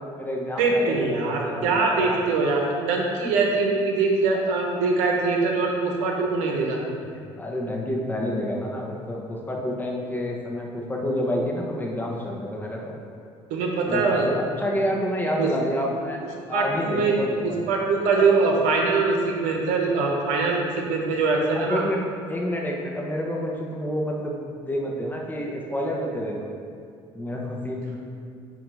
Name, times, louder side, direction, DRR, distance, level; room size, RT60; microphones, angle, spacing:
voice 1, 0.0-2.2 7.1-13.0 13.9-16.2 16.5-17.6 21.5-22.0 22.3-26.5 27.1-28.0, equal, 15° left, -1 dB, 1.1 m, -29 dB
voice 2, 0.6-6.8 13.5-14.3 15.4-15.5 16.5-17.2 17.4-21.8, right 3 dB, 85° right, 0 dB, 1.1 m, -23 dB
8.1 x 2.9 x 5.3 m, 2.3 s
supercardioid pair, 90°, 12 cm